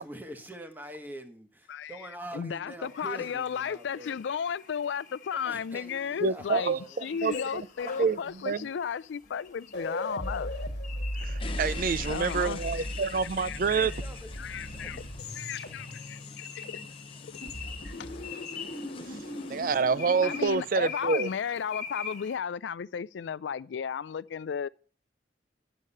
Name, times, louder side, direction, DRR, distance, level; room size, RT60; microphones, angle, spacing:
voice 1, 0.0-4.2 5.4-7.2 13.6-15.2, right 1 dB, 10° right, 1.1 m, -45 dB
voice 2, 1.7-6.7 7.0-10.5 12.1-12.7 13.1-13.9 14.4-15.0 15.3-16.8 17.2-17.3 18.0-18.1 20.2-24.7, left 7 dB, 90° left, 0.4 m, -34 dB
sound 1, 2.8-22.4, left 6 dB, 45° left, 1.2 m, -45 dB
voice 3, 6.2-7.3 8.0-8.2 8.4-8.7 11.2-13.9 19.5-21.3, right 5 dB, 50° right, 0.4 m, -27 dB
sound 2, 7.3-8.2 9.3-9.4 9.6-17.0 17.3-20.5, left 1 dB, 70° left, 1.4 m, -38 dB
sound 3, 11.4-19.8, left 4 dB, 30° left, 0.6 m, -46 dB
10.0 x 6.5 x 5.5 m
head